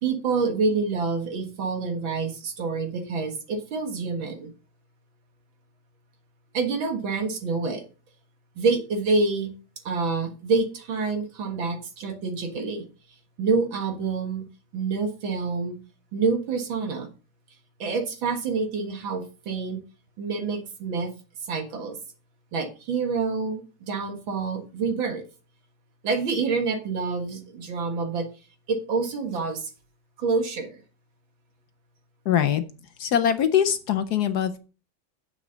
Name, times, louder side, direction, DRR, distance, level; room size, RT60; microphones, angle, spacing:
voice 1, 0.0-4.5 6.5-7.8 8.6-9.5 9.8-12.8 13.4-14.4 14.7-15.8 16.1-17.1 17.8-19.8 20.2-21.1 21.4-22.0 22.5-25.2 26.0-28.3 28.7-29.7 30.2-30.8, right 4 dB, 80° right, 5 dB, 2.3 m, -27 dB
voice 2, 32.2-32.6 33.0-34.6, left 9 dB, 65° left, 10 dB, 1.1 m, -22 dB
9.3 x 7.3 x 3.8 m, 0.34 s
omnidirectional pair, 2.1 m